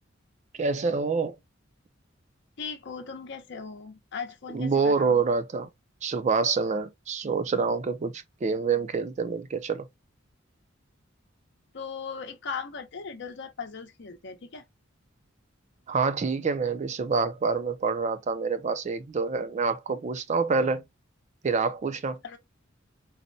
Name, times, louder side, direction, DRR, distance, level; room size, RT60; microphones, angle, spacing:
voice 1, 0.6-1.4 4.5-5.7 6.0-9.9 15.9-20.8 21.4-22.2, right 4 dB, 35° right, 0.4 m, -27 dB
voice 2, 2.6-5.2 11.7-14.6 22.2-22.4, left 5 dB, 60° left, 0.7 m, -38 dB
4.1 x 2.1 x 2.5 m
head